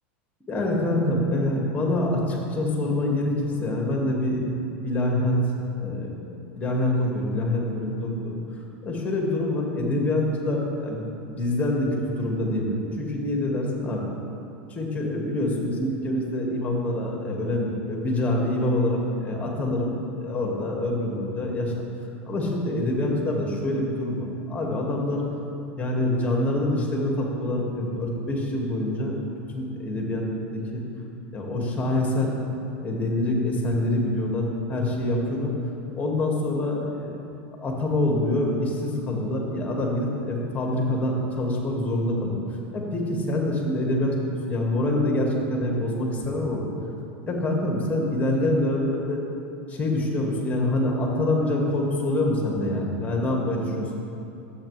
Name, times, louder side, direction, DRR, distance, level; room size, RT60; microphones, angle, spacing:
voice 1, 0.5-4.5 4.8-5.4 5.8-6.1 6.5-8.4 8.8-11.1 11.4-11.9 12.1-14.1 14.7-21.7 22.3-25.2 25.8-29.1 29.5-30.2 30.5-30.8 31.3-32.3 32.8-35.5 35.9-37.2 37.6-42.4 42.7-44.1 44.5-46.6 47.2-49.2 49.7-53.9, left 1 dB, 20° left, -1 dB, 2.2 m, -25 dB
13.0 x 8.3 x 3.4 m, 2.8 s
hypercardioid pair, 105°, 7 cm